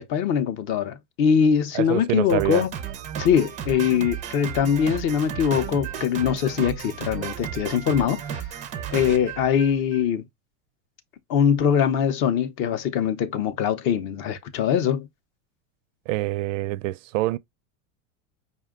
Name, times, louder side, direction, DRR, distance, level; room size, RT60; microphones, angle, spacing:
voice 1, 0.0-2.7 3.2-8.4 8.9-10.2 11.3-15.1, left 8 dB, 35° left, 0.6 m, -22 dB
voice 2, 1.7-2.6 16.1-17.4, right 17 dB, 75° right, 0.5 m, -26 dB
Drum kit, 2.3-10.1, right 9 dB, 20° right, 0.4 m, -34 dB
5.1 x 2.2 x 3.5 m
supercardioid pair, 150°, 38 cm